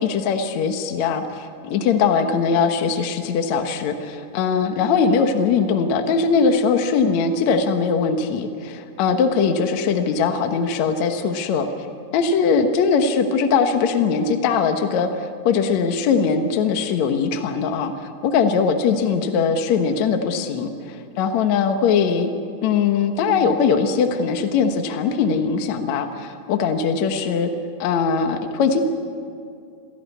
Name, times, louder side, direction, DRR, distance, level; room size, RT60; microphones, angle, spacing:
voice 1, 0.0-11.7 12.1-17.9 18.2-22.3 22.6-27.5 27.8-28.8, left 5 dB, 65° left, 6 dB, 2.3 m, -21 dB
28.0 x 17.0 x 8.3 m, 2.4 s
omnidirectional pair, 3.8 m